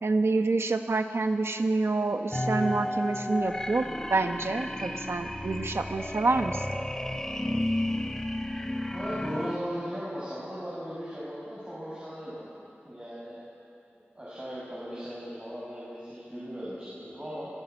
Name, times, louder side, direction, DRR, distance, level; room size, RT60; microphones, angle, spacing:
voice 1, 0.0-6.7, right 3 dB, 80° right, 7 dB, 1.2 m, -27 dB
sound 1, 2.3-9.6, left 1 dB, 15° left, 1.4 m, -32 dB
voice 2, 8.9-12.5 12.8-13.4 14.2-17.5, equal, 25° right, -9 dB, 7.1 m, -37 dB
26.5 x 16.0 x 8.4 m, 2.7 s
wide cardioid pair, 65°, 4 cm